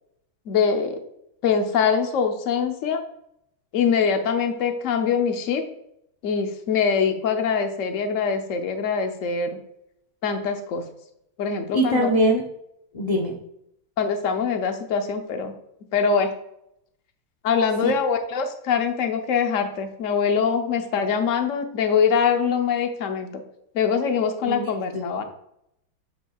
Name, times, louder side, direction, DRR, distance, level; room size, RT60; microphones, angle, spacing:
voice 1, 0.5-1.0 1.4-3.0 3.7-5.6 6.2-9.5 10.2-10.8 11.4-12.1 14.0-15.5 15.9-16.3 17.4-23.3 23.7-25.2, left 6 dB, 55° left, 6 dB, 0.9 m, -23 dB
voice 2, 11.7-12.5 12.9-13.4 17.8-17.9 24.4-25.2, right 1 dB, 75° left, 0 dB, 0.3 m, -23 dB
8.5 x 6.3 x 2.3 m, 0.77 s
omnidirectional pair, 2.2 m